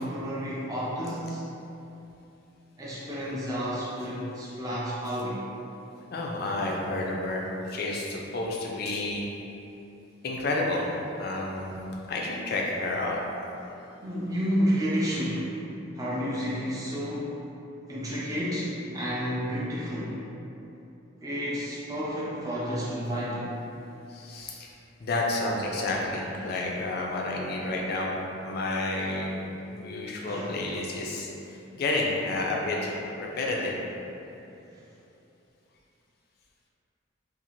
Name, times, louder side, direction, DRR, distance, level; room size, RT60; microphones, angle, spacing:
voice 1, 0.0-1.5 2.8-5.4 14.0-15.5 15.9-17.4 17.9-20.2 21.2-23.5 26.3-26.4 30.3-30.5 30.9-31.0 34.7-34.8, equal, 15° right, -7 dB, 0.4 m, -31 dB
voice 2, 6.1-9.3 10.2-10.8 11.2-11.8 12.1-13.2 24.1-24.7 25.0-28.1 28.4-33.8, left 2 dB, 50° left, -2 dB, 0.4 m, -30 dB
2.6 x 2.4 x 2.9 m, 2.9 s
head